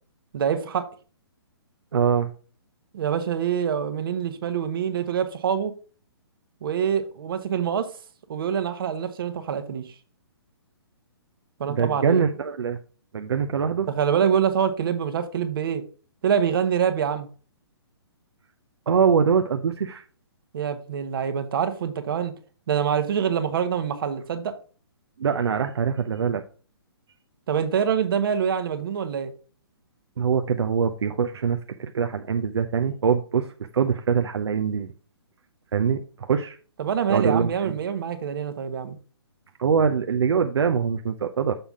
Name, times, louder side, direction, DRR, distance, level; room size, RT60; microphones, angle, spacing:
voice 1, 0.3-0.9 2.9-5.7 6.6-7.9 8.3-9.9 11.6-12.2 13.9-15.8 16.2-17.3 20.5-22.3 22.7-24.5 27.5-29.3 36.8-39.0, right 8 dB, 55° right, 1.2 m, -25 dB
voice 2, 1.9-2.3 11.7-12.8 13.1-13.9 18.9-20.0 25.2-26.4 30.2-33.5 33.7-34.9 35.7-36.6 37.1-37.8 39.6-41.5, right 6 dB, 80° right, 0.7 m, -23 dB
6.9 x 5.6 x 3.6 m
hypercardioid pair, 155°, 14 cm